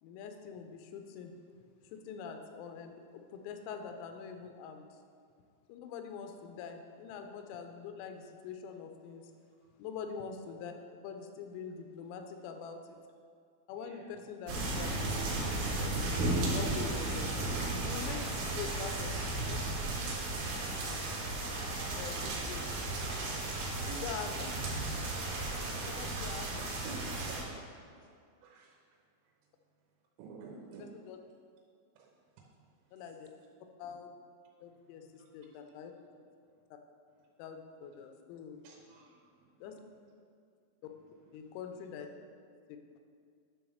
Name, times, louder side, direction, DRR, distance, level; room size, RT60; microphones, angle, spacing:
voice 1, 0.0-1.4 1.9-4.8 5.7-9.3 9.8-10.7 11.0-13.0 13.7-14.9 15.7-15.9 16.4-18.2 18.5-19.6 22.0-22.2 22.5-22.6 24.0-24.5 25.9-26.6 27.0-27.1 30.8-31.2 32.9-33.3 33.8-34.2 34.6-35.9 37.4-38.6 39.6-39.8 41.3-42.1 42.7-42.8, left 6 dB, 90° left, 5 dB, 3.4 m, -44 dB
voice 2, 13.8-14.1 22.2-22.3 23.5-24.0 24.3-24.4 26.5-27.7 28.0-28.1 28.4-28.8 30.2-30.9 32.0-32.1 32.6-32.7 35.2-35.3 38.6-39.1 39.5-39.6, right 4 dB, 90° right, -2 dB, 3.6 m, -49 dB
sound 1, 14.5-27.4, right 2 dB, 65° right, 2.6 m, -34 dB
10.0 x 3.6 x 6.3 m, 2.2 s
omnidirectional pair, 6.0 m